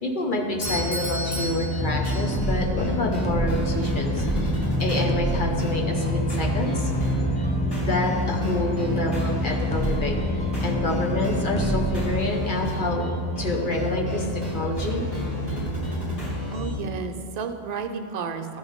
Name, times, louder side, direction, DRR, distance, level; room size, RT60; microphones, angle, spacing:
voice 1, 0.0-6.9 7.8-13.1 13.4-15.0, left 1 dB, 50° left, 0 dB, 1.0 m, -28 dB
sound 1, 0.5-16.7, left 1 dB, 30° left, 2.4 m, -30 dB
Doorbell, 0.6-2.6, equal, 75° left, 1.6 m, -33 dB
sound 2, 1.8-12.1, equal, 10° left, 0.3 m, -27 dB
voice 2, 16.5-18.6, right 5 dB, 50° right, 5 dB, 0.6 m, -32 dB
13.5 x 5.5 x 3.6 m, 2.2 s
omnidirectional pair, 1.1 m